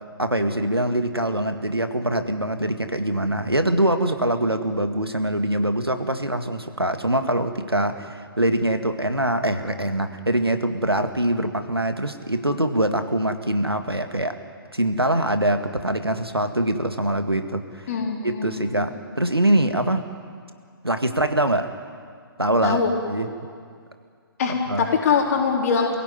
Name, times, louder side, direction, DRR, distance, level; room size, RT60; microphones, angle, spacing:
voice 1, 0.2-14.4 14.7-17.9 18.2-20.0 20.8-21.7 22.4-22.8 23.1-23.3 24.7-24.9, right 1 dB, 90° right, 7 dB, 2.0 m, -23 dB
voice 2, 17.9-18.9 22.6-22.9 24.4-26.0, left 6 dB, 40° left, 1 dB, 4.2 m, -23 dB
27.0 x 16.5 x 9.6 m, 2.1 s
figure-of-eight pair, 130°, 13 cm